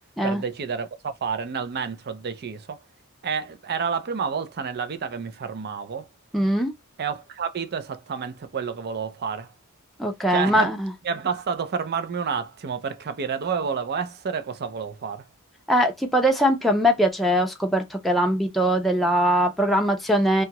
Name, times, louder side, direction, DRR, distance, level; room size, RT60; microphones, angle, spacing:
voice 1, 0.2-2.8 3.2-6.1 7.0-9.5 10.3-10.7 11.0-15.2, right 6 dB, 45° right, 0.5 m, -29 dB
voice 2, 6.3-6.7 10.0-10.9 15.7-20.4, equal, ahead, 0.5 m, -21 dB
2.8 x 2.4 x 2.8 m
head